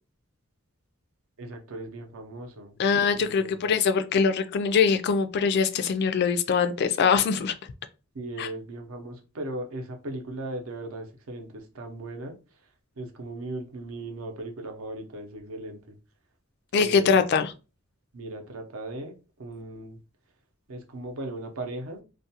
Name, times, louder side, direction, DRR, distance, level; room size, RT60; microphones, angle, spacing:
voice 1, 1.4-2.8 3.1-3.8 8.1-12.4 13.0-16.0 16.7-17.2 18.1-20.0 20.7-22.0, right 2 dB, 70° right, 0.6 m, -38 dB
voice 2, 2.8-7.5 8.4-8.5 16.7-17.5, left 6 dB, 50° left, 0.3 m, -23 dB
2.4 x 2.2 x 2.7 m
head